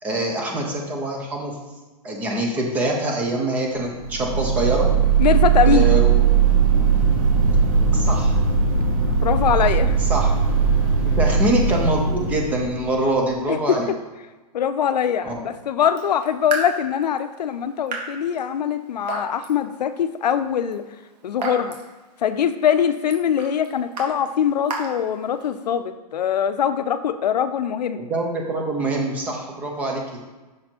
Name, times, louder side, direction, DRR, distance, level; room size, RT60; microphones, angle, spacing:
voice 1, 0.0-1.6 2.0-4.9 5.6-6.2 7.9-8.4 10.1-10.3 11.1-13.9 15.2-15.5 28.0-30.2, right 1 dB, 5° right, 1 dB, 0.4 m, -24 dB
sound 1, 3.9-13.2, right 6 dB, 55° right, 1.2 m, -19 dB
voice 2, 5.2-5.9 9.2-10.0 13.5-13.8 14.5-20.8 21.2-21.8 22.2-28.0, left 8 dB, 90° left, 11 dB, 0.5 m, -22 dB
Raindrop / Drip, 15.8-25.7, right 3 dB, 80° right, 1.6 m, -36 dB
6.3 x 4.2 x 4.3 m, 1.2 s
hypercardioid pair, 170°, 21 cm